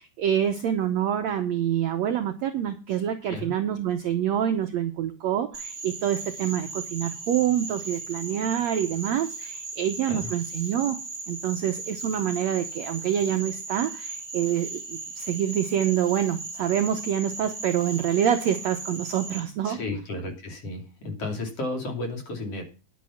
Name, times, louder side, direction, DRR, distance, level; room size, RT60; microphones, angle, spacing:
voice 1, 0.0-11.0 11.3-19.8, right 10 dB, 85° right, 7 dB, 1.5 m, -26 dB
Frog, 5.5-19.4, right 3 dB, 20° right, 3.6 m, -37 dB
voice 2, 19.6-22.6, left 2 dB, 40° left, 3 dB, 3.6 m, -33 dB
11.0 x 8.5 x 5.8 m, 0.33 s
omnidirectional pair, 4.3 m